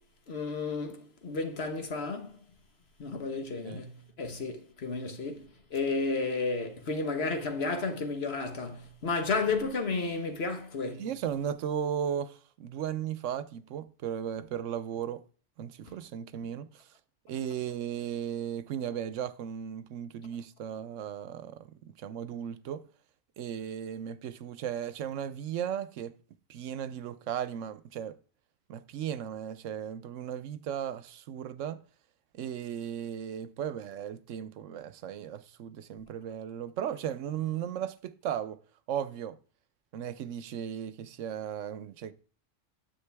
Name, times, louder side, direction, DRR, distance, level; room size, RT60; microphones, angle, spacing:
voice 1, 0.3-2.3 3.0-11.0, left 3 dB, 60° left, 1.4 m, -32 dB
voice 2, 11.0-15.2 15.6-16.8 17.3-21.5 22.0-22.8 23.4-26.1 26.5-28.2 28.7-31.8 32.3-38.6 38.9-39.4 39.9-42.1, right 9 dB, 85° right, 1.0 m, -36 dB
9.7 x 7.5 x 3.4 m
omnidirectional pair, 1.2 m